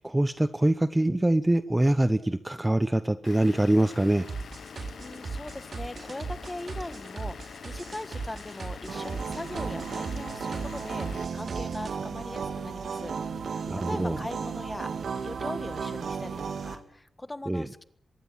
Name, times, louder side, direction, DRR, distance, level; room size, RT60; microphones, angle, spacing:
voice 1, 0.0-4.3 13.7-14.2 17.5-17.7, right 1 dB, 10° right, 12 dB, 0.9 m, -24 dB
Vehicle / Engine, 3.2-11.2, left 6 dB, 80° left, 1.3 m, -45 dB
sound 1, 4.3-11.9, right 4 dB, 45° right, 3.8 m, -38 dB
voice 2, 5.0-14.9 15.2-17.8, left 1 dB, 15° left, 12 dB, 1.6 m, -40 dB
sound 2, 8.9-16.8, right 6 dB, 85° right, 3.4 m, -34 dB
24.5 x 22.5 x 7.4 m, 0.71 s
wide cardioid pair, 160°, 0 cm